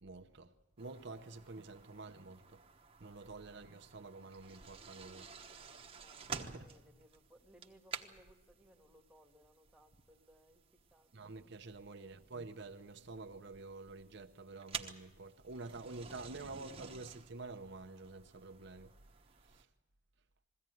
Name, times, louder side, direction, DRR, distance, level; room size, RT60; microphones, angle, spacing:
voice 1, 0.0-2.6 3.0-5.3 6.3-6.7 11.1-18.9 19.4-19.7, right 3 dB, 65° right, 0.9 m, -49 dB
sound 1, 0.8-19.6, right 5 dB, 30° right, 1.2 m, -51 dB
voice 2, 6.0-10.6 10.9-11.3 12.0-12.3, equal, 5° right, 1.8 m, -65 dB
22.0 x 16.5 x 9.2 m
head